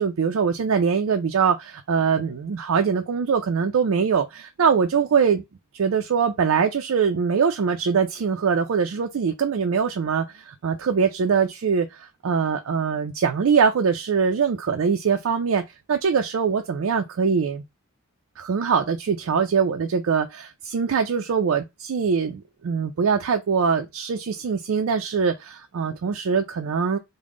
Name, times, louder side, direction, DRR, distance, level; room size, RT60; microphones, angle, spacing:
voice 1, 0.0-5.4 5.7-15.6 15.9-17.6 18.4-27.0, right 6 dB, 75° right, 0.4 m, -23 dB
3.5 x 2.1 x 3.6 m
head